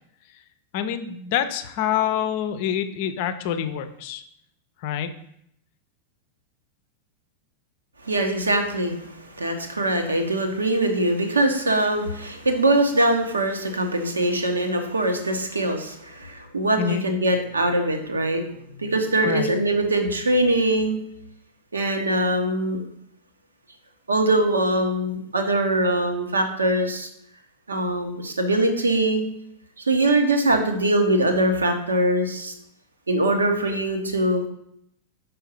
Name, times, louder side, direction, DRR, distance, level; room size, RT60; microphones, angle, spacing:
voice 1, 0.7-4.2 4.8-5.1 16.8-17.0 19.2-19.5, left 9 dB, 50° left, 10 dB, 0.6 m, -26 dB
voice 2, 8.0-18.4 18.8-21.0 21.7-22.8 24.1-27.1 27.7-29.2 29.9-32.5 33.1-34.5, right 1 dB, 75° right, 5 dB, 0.9 m, -22 dB
5.4 x 4.2 x 5.2 m, 0.74 s
figure-of-eight pair, 90°, 0 cm